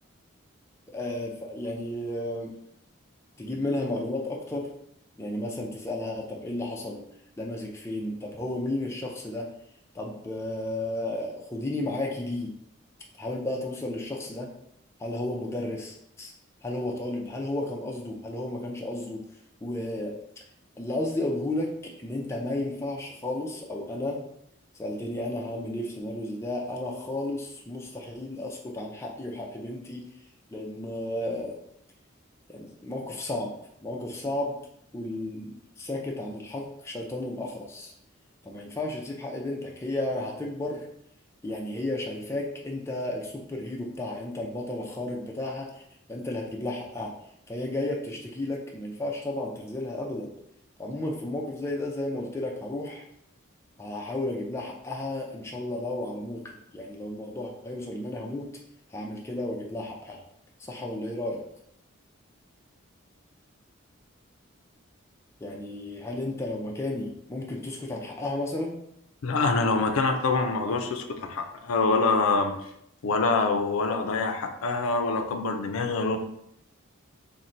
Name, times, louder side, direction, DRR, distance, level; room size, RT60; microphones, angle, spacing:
voice 1, 0.9-2.6 3.4-4.7 5.2-7.0 7.4-9.6 9.9-12.5 13.2-14.5 15.0-16.3 16.6-19.2 19.6-20.2 20.8-24.3 24.8-30.1 30.5-31.6 32.5-33.5 33.8-34.6 34.9-37.9 38.4-40.9 41.4-45.8 46.1-47.1 47.5-50.3 50.8-53.1 53.8-58.6 58.9-60.2 60.6-61.5 65.4-68.8, left 1 dB, 15° left, -1 dB, 0.4 m, -33 dB
voice 2, 69.2-72.5 73.0-76.2, left 3 dB, 85° left, 6 dB, 0.4 m, -25 dB
4.1 x 2.1 x 2.5 m, 0.74 s
head